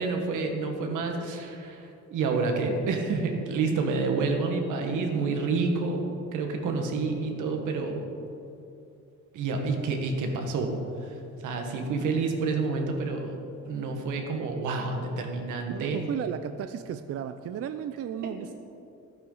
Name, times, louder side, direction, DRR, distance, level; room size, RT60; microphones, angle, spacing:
voice 1, 0.0-6.0 6.3-8.0 9.3-10.7 11.0-11.2 11.4-13.4 13.7-16.0 18.2-18.3, right 4 dB, 85° right, 3 dB, 1.5 m, -29 dB
voice 2, 15.7-18.5, right 9 dB, 50° right, 10 dB, 0.5 m, -34 dB
12.0 x 9.5 x 4.0 m, 2.6 s
cardioid pair, 90°, 30 cm